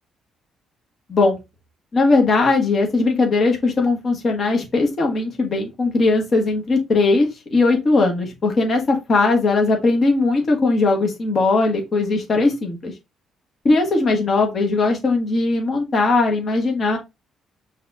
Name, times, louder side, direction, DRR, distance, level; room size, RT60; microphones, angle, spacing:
voice 1, 1.9-12.9 13.6-17.0, left 3 dB, 45° left, 2 dB, 1.3 m, -19 dB
5.7 x 3.0 x 2.5 m, 0.23 s
cardioid pair, 105°, 0 cm